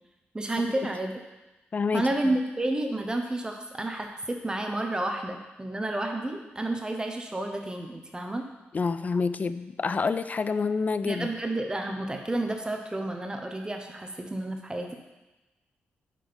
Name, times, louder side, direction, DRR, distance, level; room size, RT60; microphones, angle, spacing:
voice 1, 0.3-1.1 1.9-8.4 11.0-14.9, right 1 dB, 20° right, 3 dB, 0.8 m, -30 dB
voice 2, 1.7-2.1 8.7-11.3, left 4 dB, 40° left, 12 dB, 0.4 m, -27 dB
5.9 x 4.9 x 5.1 m, 1.1 s
cardioid pair, 75°, 4 cm